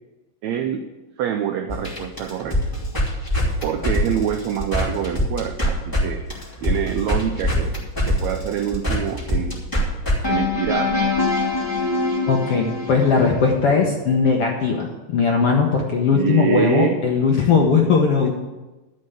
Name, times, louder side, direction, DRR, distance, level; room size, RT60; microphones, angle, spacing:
voice 1, 0.4-0.8 1.2-2.6 3.6-6.2 6.6-7.7 8.0-9.6 10.3-11.1 16.1-17.0, right 9 dB, 85° right, 5 dB, 1.6 m, -25 dB
sound 1, 1.7-6.0 6.3-13.5, left 1 dB, 5° left, 2.5 m, -23 dB
voice 2, 12.3-18.3, left 5 dB, 65° left, 0 dB, 1.5 m, -19 dB
12.5 x 5.6 x 8.0 m, 1.1 s
omnidirectional pair, 4.0 m